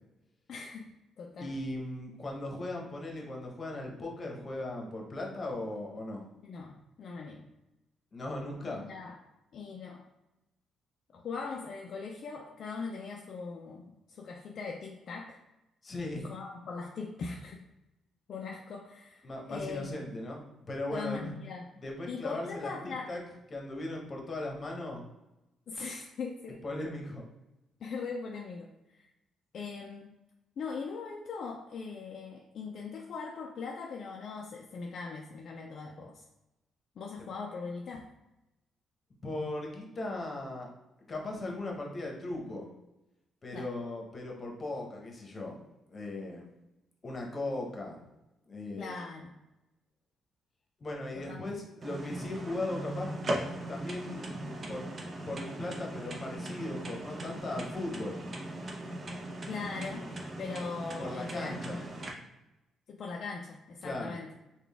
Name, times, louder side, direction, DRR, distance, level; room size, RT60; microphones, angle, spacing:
voice 1, 0.5-0.9 1.2-1.5 6.4-7.5 8.6-9.2 9.5-10.1 11.1-15.4 16.2-17.6 18.3-20.0 20.9-21.6 22.1-23.1 25.7-26.6 27.8-29.1 29.5-30.1 30.6-36.2 37.0-38.1 43.5-43.7 48.8-49.4 51.1-51.5 59.4-61.8 62.9-64.3, left 4 dB, 60° left, 0 dB, 0.4 m, -40 dB
voice 2, 1.4-6.2 8.1-8.8 15.8-16.2 19.2-21.3 21.8-23.2 23.5-25.1 26.6-27.2 39.2-40.7 41.1-42.7 43.4-45.6 45.9-46.5 47.0-48.0 48.5-48.9 50.8-53.1 53.7-54.8 55.2-58.2 61.0-61.8 63.8-64.2, left 2 dB, 35° left, 0 dB, 0.9 m, -38 dB
sound 1, 51.8-62.1, right 1 dB, 40° right, 0.7 m, -39 dB
3.8 x 2.3 x 3.4 m, 0.96 s
cardioid pair, 90°, 0 cm